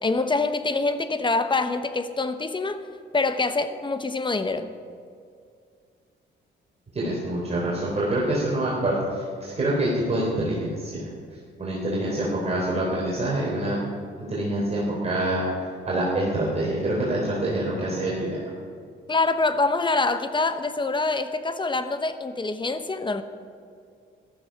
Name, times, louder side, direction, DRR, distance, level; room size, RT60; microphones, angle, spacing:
voice 1, 0.0-2.8 3.1-4.7 19.1-23.2, left 3 dB, 25° left, 10 dB, 0.9 m, -25 dB
voice 2, 6.9-11.0 11.6-13.8 14.3-15.5 15.9-18.4, right 1 dB, 30° right, -5 dB, 3.7 m, -26 dB
14.5 x 13.0 x 5.8 m, 2.3 s
cardioid pair, 90°, 20 cm